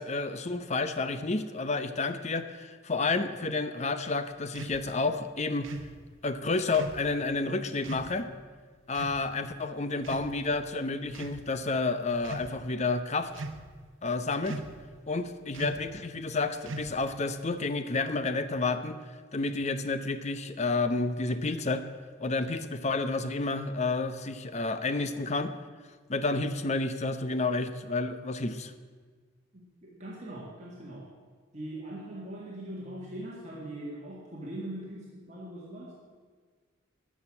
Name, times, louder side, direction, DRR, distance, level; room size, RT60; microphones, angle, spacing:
voice 1, 0.0-5.7 6.2-8.3 8.9-13.3 14.0-14.6 15.1-19.0 19.3-21.9 22.2-25.5 26.1-28.7, left 3 dB, 35° left, 11 dB, 0.7 m, -30 dB
sound 1, 4.5-4.8 5.6-5.9 6.7-7.1 7.8-8.1 8.9-9.2 10.0-10.6 11.1-11.4 12.1-12.5 13.3-13.8 14.4-14.8 15.5-15.9 16.6-17.1, right 2 dB, 80° right, 0.9 m, -39 dB
voice 2, 29.5-31.1 31.5-35.9, right 1 dB, 35° right, -5 dB, 1.9 m, -41 dB
13.0 x 6.3 x 8.7 m, 1.5 s
head